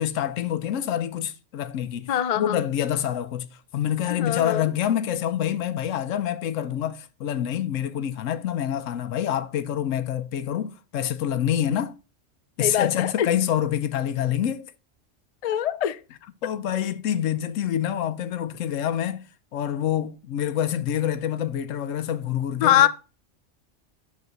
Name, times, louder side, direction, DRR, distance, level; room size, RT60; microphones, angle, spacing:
voice 1, 0.0-3.5 3.7-11.9 12.6-14.7 16.4-19.2 19.5-22.9, left 10 dB, 90° left, 1.0 m, -26 dB
voice 2, 2.1-2.6 4.1-4.7 12.6-13.3 15.4-16.0 22.6-22.9, left 11 dB, 70° left, 0.3 m, -22 dB
10.5 x 3.6 x 6.6 m
omnidirectional pair, 1.3 m